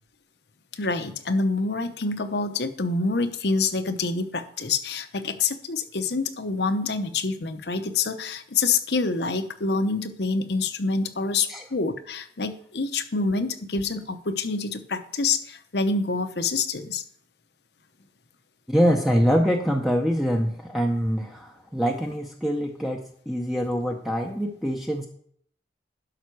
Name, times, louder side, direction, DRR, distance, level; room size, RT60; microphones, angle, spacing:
voice 1, 0.8-17.0, left 4 dB, 70° left, 9 dB, 0.9 m, -26 dB
voice 2, 18.7-25.1, equal, ahead, 1 dB, 0.7 m, -24 dB
11.5 x 5.7 x 4.6 m, 0.63 s
head